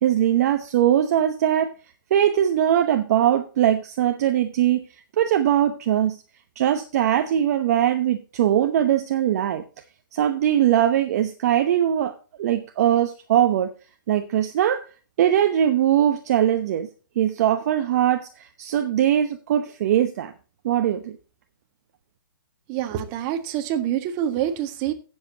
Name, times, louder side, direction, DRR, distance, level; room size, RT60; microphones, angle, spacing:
voice 1, 0.0-1.7 2.1-4.8 5.2-6.2 6.6-9.6 10.1-12.1 12.4-13.7 14.1-14.8 15.2-16.9 17.2-20.3 20.6-21.2, right 11 dB, 50° right, 7 dB, 0.9 m, -21 dB
voice 2, 22.7-24.9, right 10 dB, 30° right, 6 dB, 1.6 m, -26 dB
16.5 x 7.5 x 2.9 m, 0.35 s
hypercardioid pair, 140°, 11 cm